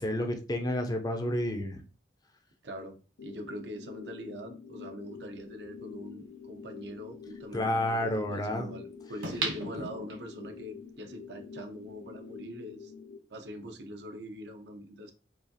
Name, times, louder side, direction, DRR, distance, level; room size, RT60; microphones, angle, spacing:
voice 1, 0.0-1.8 7.5-8.7, left 1 dB, 20° left, 0.4 m, -30 dB
voice 2, 2.6-12.9 13.3-15.1, equal, 70° right, 0.7 m, -43 dB
sound 1, 3.2-13.2, left 6 dB, 85° left, 0.5 m, -47 dB
sound 2, 5.6-5.7 9.2-10.5 11.0-11.1, right 3 dB, 85° right, 1.0 m, -35 dB
4.8 x 2.4 x 2.7 m
head